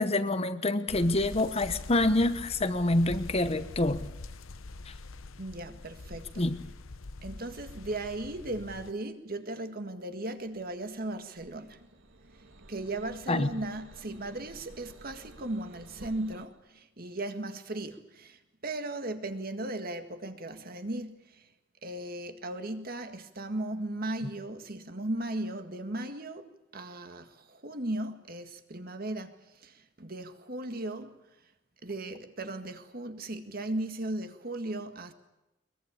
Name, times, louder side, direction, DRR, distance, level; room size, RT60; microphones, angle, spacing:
voice 1, 0.0-4.0 4.9-5.0 6.4-6.6 13.3-13.5, left 2 dB, 30° left, 11 dB, 1.0 m, -26 dB
sound 1, 0.9-8.9, left 3 dB, 85° left, 0.9 m, -44 dB
voice 2, 5.4-6.4 7.2-11.8 12.3-12.4 12.7-21.5 21.8-31.1 31.8-35.1, right 1 dB, 45° right, 8 dB, 1.8 m, -37 dB
sound 2, 10.4-16.5, right 1 dB, 70° right, 2.4 m, -53 dB
22.5 x 22.0 x 8.6 m, 0.95 s
head